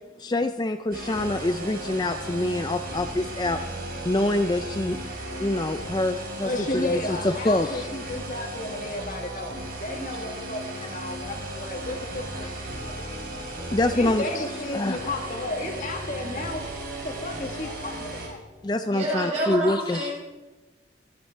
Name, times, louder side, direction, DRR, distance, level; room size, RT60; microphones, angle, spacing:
voice 1, 0.2-3.6 4.0-5.0 5.4-7.9 8.2-8.3 9.1-9.2 13.7-14.4 14.7-15.2 18.6-20.1, left 2 dB, 20° left, 8 dB, 0.4 m, -26 dB
sound 1, 0.9-18.3, right 1 dB, 55° right, 3.9 m, -35 dB
voice 2, 6.4-12.5 12.8-12.9 13.9-18.4, left 2 dB, 45° left, 3 dB, 1.5 m, -33 dB
voice 3, 18.9-20.1, right 1 dB, 35° right, -4 dB, 6.7 m, -28 dB
24.0 x 9.5 x 4.5 m, 1.1 s
head